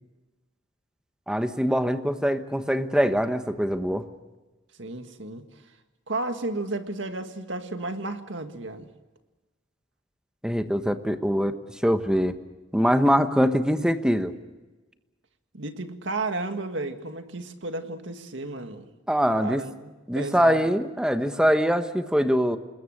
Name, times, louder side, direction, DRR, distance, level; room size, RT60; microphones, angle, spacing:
voice 1, 1.3-4.0 10.4-12.3 12.7-14.3 19.1-19.6 20.1-22.6, equal, 5° right, 9 dB, 1.2 m, -23 dB
voice 2, 4.8-5.4 6.1-8.9 15.5-18.9 19.3-20.7, right 2 dB, 70° right, 7 dB, 1.9 m, -33 dB
27.0 x 21.0 x 6.6 m, 1.2 s
head